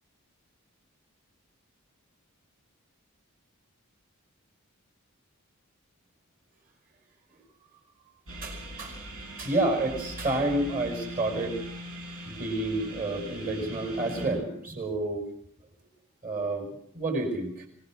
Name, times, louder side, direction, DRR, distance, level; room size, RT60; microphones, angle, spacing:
sound 1, 8.3-14.3, equal, 70° right, 6.1 m, -41 dB
voice 1, 8.4-9.0 9.4-11.6 12.3-15.2 16.2-17.7, right 2 dB, 40° right, 5 dB, 5.7 m, -29 dB
25.0 x 18.5 x 6.3 m, 0.66 s
head